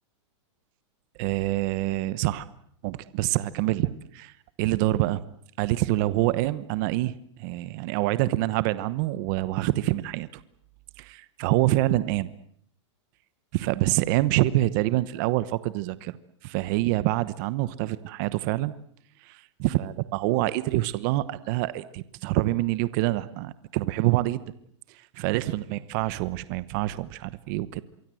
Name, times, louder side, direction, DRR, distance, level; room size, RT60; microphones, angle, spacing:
voice 1, 1.2-2.5 2.8-5.2 5.6-10.4 11.0-12.3 13.5-16.2 16.4-18.7 19.2-24.4 25.2-27.8, right 17 dB, 40° right, 16 dB, 1.0 m, -26 dB
26.5 x 24.0 x 7.8 m, 0.65 s
supercardioid pair, 160°, 16 cm